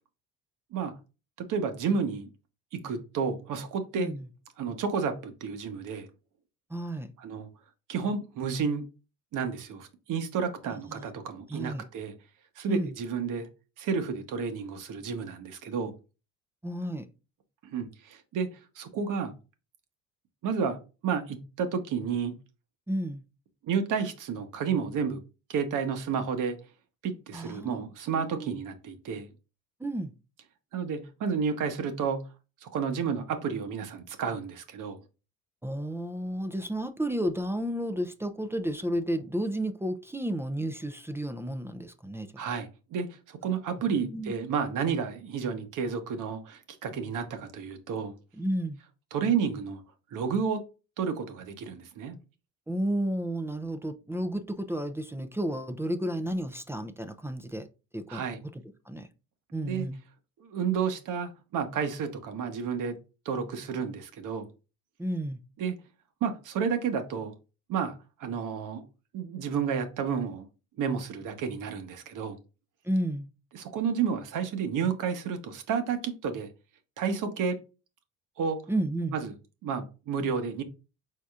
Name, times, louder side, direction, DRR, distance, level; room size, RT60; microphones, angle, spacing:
voice 1, 1.4-2.3 2.7-4.1 4.6-6.1 7.2-7.5 7.9-8.8 9.3-12.1 12.6-13.5 13.8-15.9 17.6-18.5 18.8-19.3 20.4-22.3 23.6-25.2 25.5-26.6 27.0-29.3 30.7-32.2 32.6-35.0 42.4-48.1 49.1-49.8 50.1-50.6 51.0-52.2 58.1-58.4 59.6-59.9 60.4-63.0 63.2-64.5 65.6-65.8 66.2-67.3 67.7-68.8 69.1-70.4 70.8-72.4 73.5-76.5 77.0-77.6 78.4-78.6 79.1-79.3 79.6-80.6, right 6 dB, 60° right, 1.1 m, -31 dB
voice 2, 6.7-7.1 10.7-11.1 11.5-11.8 12.7-12.9 16.6-17.1 22.9-23.2 27.3-27.8 28.1-28.5 29.8-30.1 35.6-42.3 43.9-44.3 48.4-48.8 52.7-57.7 57.9-58.2 58.5-59.1 59.5-60.0 65.0-65.4 72.8-73.3 78.7-79.2, right 1 dB, 5° right, 0.5 m, -32 dB
4.8 x 4.1 x 2.4 m
cardioid pair, 100°, 35 cm